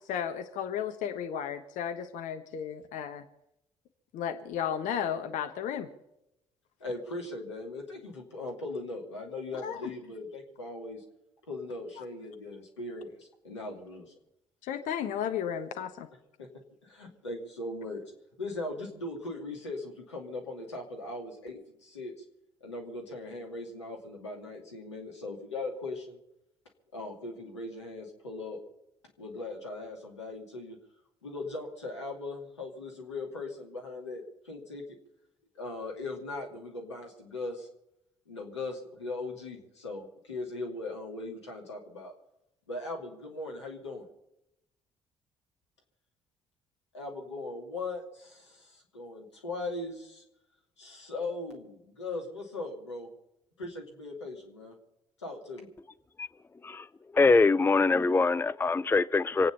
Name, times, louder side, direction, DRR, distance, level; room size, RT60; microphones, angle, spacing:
voice 1, 0.1-3.2 4.1-5.9 9.6-9.9 12.0-12.1 14.6-16.1, left 8 dB, 60° left, 7 dB, 1.3 m, -34 dB
voice 2, 6.8-11.0 11.5-14.1 16.4-16.5 16.8-18.1 18.4-22.1 22.6-26.2 26.9-28.6 29.2-30.8 31.2-34.8 35.5-37.7 38.3-42.1 42.7-44.1 46.9-50.2 50.8-53.1 53.6-54.7 55.2-55.7, left 2 dB, 90° left, 0 dB, 2.6 m, -39 dB
voice 3, 57.1-59.5, left 3 dB, 15° left, 18 dB, 0.5 m, -23 dB
26.0 x 9.2 x 5.6 m, 0.84 s
figure-of-eight pair, 50°, 14 cm